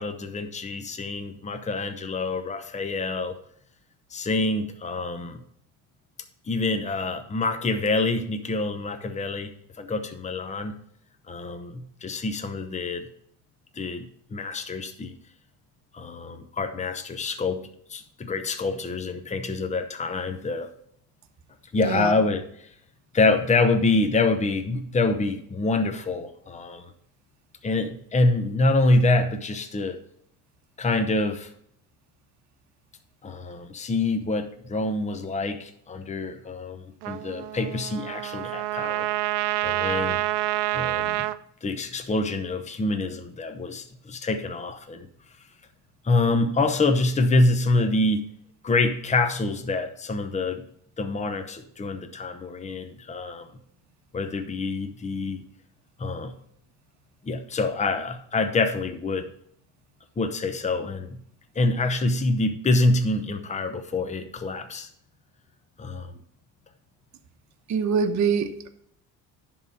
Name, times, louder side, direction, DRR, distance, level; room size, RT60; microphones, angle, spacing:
voice 1, 0.0-3.4 4.1-5.4 6.5-9.5 9.8-10.7 11.3-13.1 13.7-15.2 15.9-20.7 21.7-22.7 23.1-26.9 27.6-30.0 30.8-31.5 33.2-39.1 39.6-40.2 40.7-41.3 41.6-45.1 46.0-48.2 48.6-50.6 51.0-53.5 54.1-55.4 56.0-56.3 57.2-59.3 60.2-61.2 61.5-64.9 65.8-66.1, left 2 dB, 15° left, 7 dB, 0.9 m, -26 dB
Trumpet, 37.0-41.4, right 17 dB, 70° right, 0.6 m, -27 dB
voice 2, 67.7-68.7, right 6 dB, 45° right, 5 dB, 1.0 m, -24 dB
10.5 x 3.9 x 6.7 m, 0.66 s
supercardioid pair, 100°, 41 cm